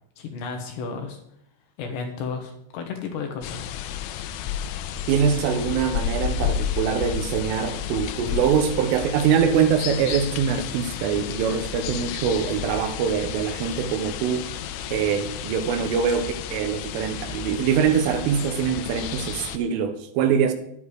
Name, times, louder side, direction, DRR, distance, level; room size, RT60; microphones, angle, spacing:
voice 1, 0.2-1.2 1.8-3.6, left 5 dB, 70° left, 3.0 m, -33 dB
sound 1, 3.4-19.6, left 9 dB, 90° left, 3.4 m, -32 dB
voice 2, 5.1-14.5 14.9-20.5, right 7 dB, 80° right, 3.6 m, -23 dB
11.5 x 10.0 x 4.8 m
omnidirectional pair, 5.8 m